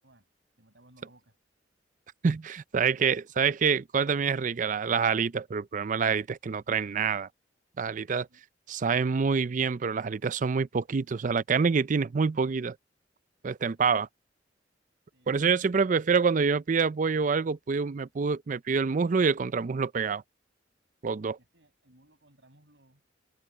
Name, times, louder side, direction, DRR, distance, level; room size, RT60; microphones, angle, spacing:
voice 1, 0.6-1.4 8.3-8.4 21.2-23.0, right 1 dB, 70° right, 6.7 m, -61 dB
voice 2, 2.2-7.3 7.8-8.3 8.7-12.8 13.4-14.1 15.3-20.2 21.0-21.4, right 5 dB, 45° right, 0.4 m, -26 dB
open air
head